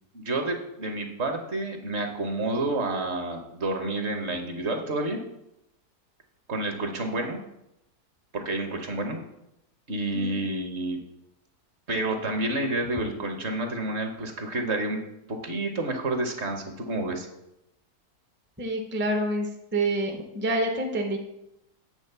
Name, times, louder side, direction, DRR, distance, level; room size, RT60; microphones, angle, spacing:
voice 1, 0.1-5.2 6.5-7.4 8.3-9.2 9.9-11.0 11.9-15.0 15.3-17.3, right 2 dB, 50° right, 5 dB, 1.2 m, -29 dB
voice 2, 18.6-21.2, right 1 dB, 15° right, 3 dB, 0.4 m, -27 dB
8.3 x 3.9 x 6.6 m, 0.84 s
omnidirectional pair, 1.6 m